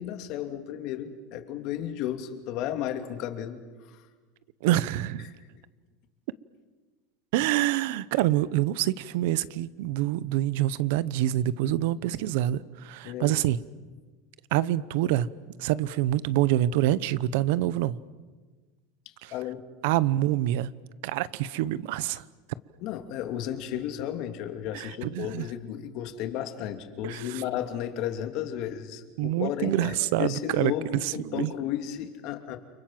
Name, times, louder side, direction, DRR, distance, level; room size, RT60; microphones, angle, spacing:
voice 1, 0.0-3.6 3.9-4.0 13.0-13.4 19.3-19.6 22.8-32.6, left 11 dB, 55° left, 2.8 m, -33 dB
voice 2, 4.6-5.3 7.3-13.6 14.5-15.3 15.6-18.0 19.2-19.3 19.8-20.7 21.0-22.2 24.7-25.5 27.0-27.4 29.2-31.5, right 14 dB, 70° right, 0.9 m, -26 dB
30.0 x 24.0 x 7.7 m
supercardioid pair, 140°, 0 cm